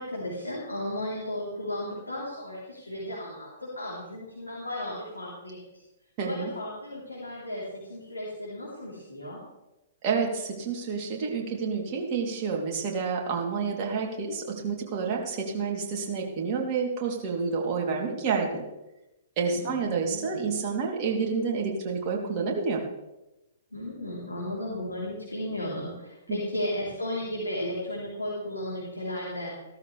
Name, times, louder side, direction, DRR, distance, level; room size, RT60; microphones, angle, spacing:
voice 1, 0.0-5.8 6.2-9.4 19.4-20.4 23.7-29.5, left 1 dB, 90° left, -7 dB, 3.6 m, -35 dB
voice 2, 6.2-6.5 10.0-18.6 19.4-22.8 26.3-26.4, right 5 dB, 40° right, -1 dB, 3.2 m, -29 dB
16.0 x 13.0 x 3.4 m, 0.97 s
figure-of-eight pair, 115°, 0 cm